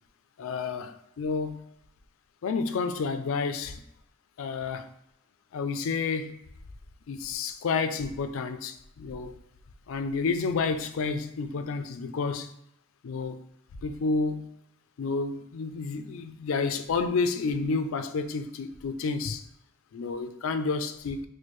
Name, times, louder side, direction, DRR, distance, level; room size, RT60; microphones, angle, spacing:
voice 1, 0.4-1.6 2.4-3.8 4.4-4.9 5.5-6.4 7.1-9.3 9.9-12.5 13.0-13.4 13.8-14.5 15.0-19.4 19.9-21.2, left 4 dB, 75° left, 0.4 m, -30 dB
4.3 x 2.2 x 3.1 m
head